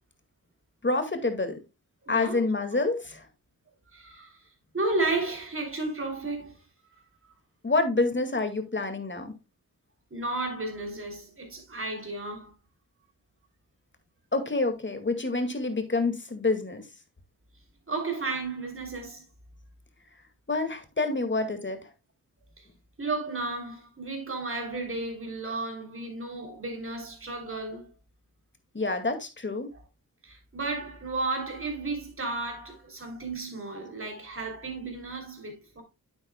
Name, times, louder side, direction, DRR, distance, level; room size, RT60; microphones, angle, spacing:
voice 1, 0.8-1.6 2.1-3.3 7.6-9.3 14.3-16.9 20.5-21.9 28.7-29.7, left 3 dB, 30° left, 2.1 m, -27 dB
voice 2, 2.0-2.4 2.7-2.9 3.9-4.4 4.7-6.5 10.1-12.5 17.9-19.2 22.6-22.7 23.0-27.9 30.2-35.8, right 3 dB, 35° right, 3.3 m, -33 dB
9.0 x 8.1 x 2.3 m
cardioid pair, 60°, 36 cm